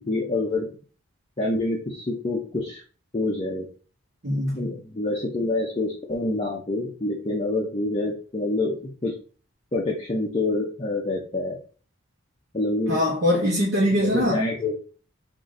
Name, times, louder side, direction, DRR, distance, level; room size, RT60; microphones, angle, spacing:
voice 1, 0.1-0.7 1.4-2.8 3.1-3.7 4.5-9.1 9.7-11.6 12.5-13.0 14.0-14.8, left 2 dB, 30° left, 0.7 m, -26 dB
voice 2, 4.2-4.7 12.9-14.4, left 1 dB, 55° right, 1.0 m, -22 dB
3.6 x 2.6 x 3.7 m
head